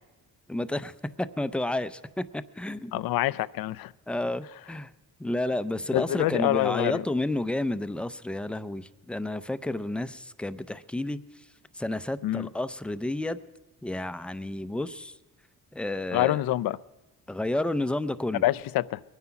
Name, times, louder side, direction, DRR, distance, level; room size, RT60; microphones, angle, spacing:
voice 1, 0.5-3.0 4.1-4.9 5.2-11.2 11.7-13.4 13.8-15.1 15.7-16.4 17.3-18.4, left 1 dB, 5° left, 0.4 m, -31 dB
voice 2, 2.9-3.9 5.9-7.0 12.2-12.5 16.1-16.8 18.4-19.0, left 15 dB, 75° left, 0.5 m, -26 dB
22.0 x 9.7 x 5.8 m
cardioid pair, 95°, 36 cm